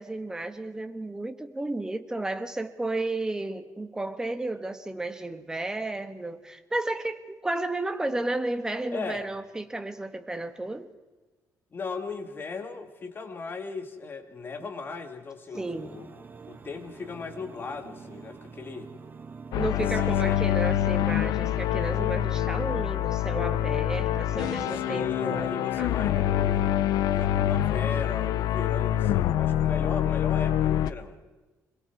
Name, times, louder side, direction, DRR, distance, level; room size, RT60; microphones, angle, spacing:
voice 1, 0.0-10.9 14.6-14.7 15.6-16.0 19.5-26.2, right 2 dB, 10° right, 7 dB, 1.5 m, -33 dB
voice 2, 8.9-9.3 11.7-16.1 16.5-18.9 19.7-20.3 24.7-26.7 27.1-31.2, left 4 dB, 35° left, 6 dB, 2.2 m, -37 dB
sound 1, 15.5-30.2, right 5 dB, 30° right, 1.3 m, -46 dB
sound 2, 19.5-30.9, left 12 dB, 90° left, 0.7 m, -26 dB
26.5 x 22.0 x 4.7 m, 1.2 s
cardioid pair, 125°, 6 cm